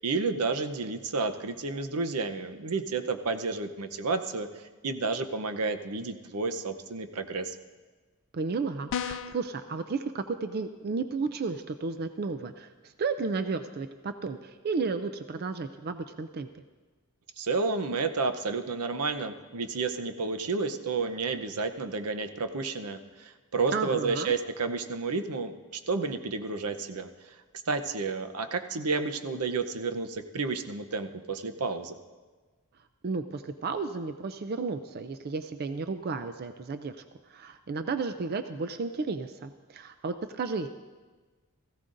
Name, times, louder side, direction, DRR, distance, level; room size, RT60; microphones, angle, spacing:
voice 1, 0.0-4.5 4.8-7.5 17.4-27.1 27.7-32.0, right 4 dB, 80° right, 8 dB, 0.8 m, -31 dB
voice 2, 8.3-16.5 23.7-24.3 33.0-37.0 37.3-40.7, right 4 dB, 45° right, 9 dB, 0.4 m, -33 dB
sound 1, 8.9-9.5, left 8 dB, 60° left, 0.4 m, -33 dB
17.5 x 15.5 x 2.6 m, 1.3 s
head